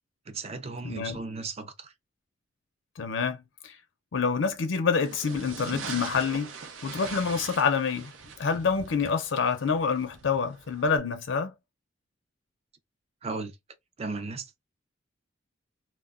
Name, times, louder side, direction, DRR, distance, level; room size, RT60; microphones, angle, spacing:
voice 1, 0.3-1.9 13.2-13.5 14.0-14.6, right 3 dB, 35° right, 0.5 m, -36 dB
voice 2, 0.8-1.2 3.0-3.8 4.1-6.5 6.8-8.1 8.4-11.5, left 5 dB, 70° left, 0.5 m, -27 dB
sound 1, 5.0-11.0, right 5 dB, 90° right, 0.7 m, -42 dB
2.1 x 2.1 x 3.5 m
head